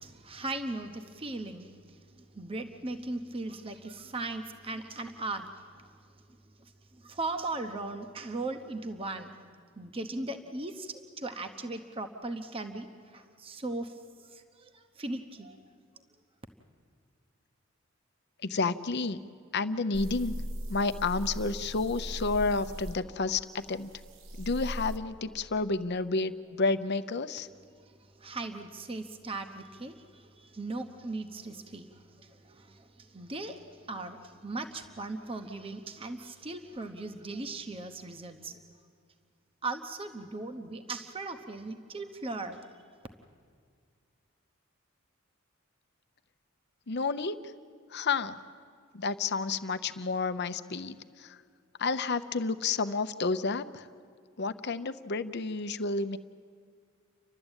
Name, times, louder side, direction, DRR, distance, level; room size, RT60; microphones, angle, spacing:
voice 1, 0.0-1.7 2.3-5.5 7.0-9.3 9.8-12.9 13.1-13.9 14.3-15.6 28.2-31.9 32.5-32.8 33.1-33.6 33.9-38.6 39.6-42.6, right 2 dB, 25° right, 7 dB, 0.9 m, -38 dB
voice 2, 18.4-19.2 19.5-20.3 20.7-23.4 23.7-23.9 24.4-27.5 46.9-47.4 47.9-48.3 48.9-51.0 51.2-51.3 51.8-53.8 54.4-56.2, left 4 dB, 55° left, 11 dB, 0.7 m, -30 dB
sound 1, 19.9-25.0, right 1 dB, 65° right, 1.1 m, -39 dB
30.0 x 12.5 x 9.0 m, 2.1 s
head